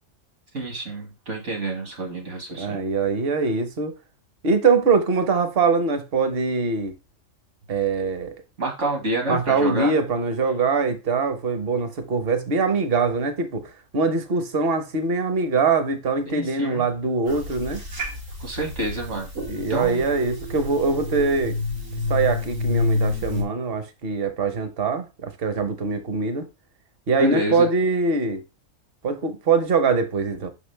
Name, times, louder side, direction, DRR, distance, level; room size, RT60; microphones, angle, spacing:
voice 1, 0.5-2.8 8.6-9.9 16.3-16.9 18.4-19.3 19.7-20.0 27.2-27.7, right 2 dB, 65° right, 2.1 m, -28 dB
voice 2, 2.5-3.9 4.4-7.0 7.7-8.4 9.3-17.8 19.5-21.6 22.1-26.5 27.1-28.4 29.0-30.5, right 4 dB, 50° right, 1.1 m, -23 dB
sound 1, 17.3-23.4, left 3 dB, 85° right, 2.3 m, -28 dB
5.9 x 5.2 x 3.3 m
omnidirectional pair, 1.3 m